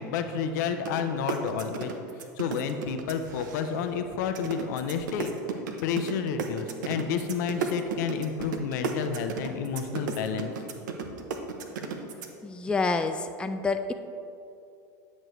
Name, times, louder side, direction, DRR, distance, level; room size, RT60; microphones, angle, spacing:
voice 1, 0.0-1.9 2.4-5.3 5.8-10.5, left 6 dB, 70° left, 7 dB, 0.6 m, -30 dB
sound 1, 0.8-1.0 1.3-3.9 4.3-12.3, right 6 dB, 75° right, 0.7 m, -33 dB
voice 2, 12.4-13.9, left 4 dB, 10° left, 7 dB, 0.3 m, -28 dB
9.5 x 6.3 x 3.1 m, 2.6 s
hypercardioid pair, 90°, 10 cm